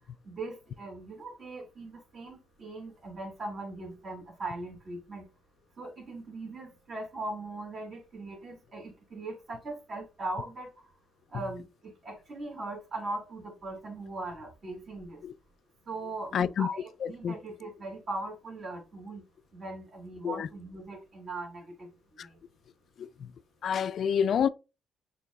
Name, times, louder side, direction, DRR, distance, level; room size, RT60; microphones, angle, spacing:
voice 1, 0.2-5.2 5.8-10.9 11.3-11.6 12.0-15.2 15.9-19.2 19.5-21.9 22.2-22.4, right 2 dB, 50° right, 2.2 m, -39 dB
voice 2, 16.3-16.7 17.2-17.4 20.2-20.5 22.2-22.3 23.0-23.3 23.6-24.5, left 8 dB, 60° left, 0.3 m, -28 dB
6.7 x 2.8 x 2.3 m
cardioid pair, 90°, 0 cm